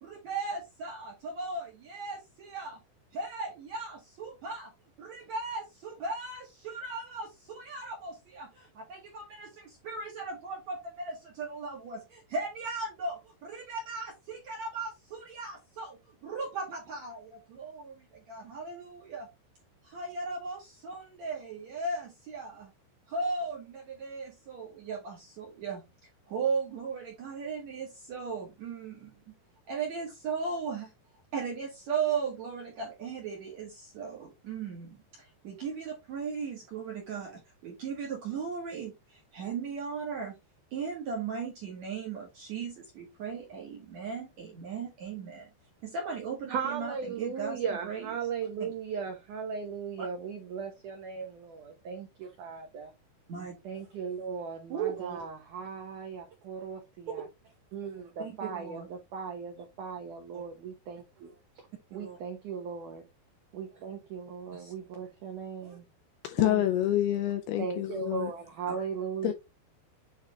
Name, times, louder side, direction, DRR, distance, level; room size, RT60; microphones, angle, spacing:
voice 1, 0.0-2.8 3.1-4.7 5.0-19.3 19.8-22.7 23.1-25.8 26.3-29.1 29.7-30.9 31.3-40.4 40.7-45.5 45.8-48.2 48.6-48.7 50.0-50.1 53.3-53.5 54.7-55.2 57.1-57.2 58.2-58.9 60.3-60.4 62.0-62.2 64.5-64.7 66.4-66.5 68.7-68.8, right 4 dB, 65° right, 1.9 m, -37 dB
voice 2, 46.5-52.9 53.6-57.2 57.7-61.3 61.9-63.0 63.5-65.8 66.4-66.6 67.6-69.3, right 6 dB, 80° right, 1.8 m, -37 dB
voice 3, 66.2-68.3 69.2-69.3, left 13 dB, 80° left, 2.3 m, -27 dB
8.8 x 3.4 x 3.5 m
omnidirectional pair, 5.1 m